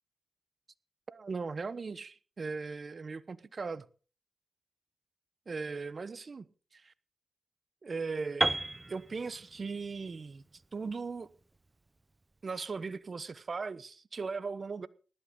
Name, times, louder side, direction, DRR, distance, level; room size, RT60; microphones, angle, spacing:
voice 1, 1.1-3.8 5.5-6.5 6.7-6.9 7.8-8.6 8.9-10.4 10.7-11.3 12.4-14.9, right 4 dB, 55° right, 1.0 m, -38 dB
Piano, 8.4-12.3, right 2 dB, 30° right, 0.9 m, -35 dB
20.0 x 11.5 x 3.8 m
cardioid pair, 50°, 0 cm